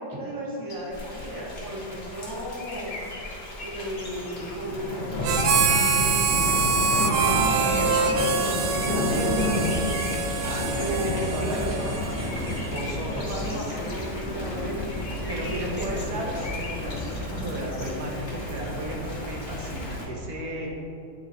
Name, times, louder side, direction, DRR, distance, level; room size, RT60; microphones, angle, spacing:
voice 1, 0.0-2.9 3.6-6.2 6.9-9.6 10.7-12.2 13.3-16.1, right 1 dB, 15° right, -5 dB, 1.0 m, -34 dB
sound 1, 0.7-17.9, left 2 dB, 60° left, 0.4 m, -43 dB
Thunder / Rain, 0.9-20.0, left 2 dB, 30° left, 1.1 m, -31 dB
Harmonica, 5.2-13.0, right 5 dB, 75° right, 1.2 m, -25 dB
voice 2, 10.4-12.0 12.7-13.6 15.3-20.7, right 1 dB, 55° right, -1 dB, 1.5 m, -35 dB
9.1 x 3.9 x 4.2 m, 2.9 s
omnidirectional pair, 2.0 m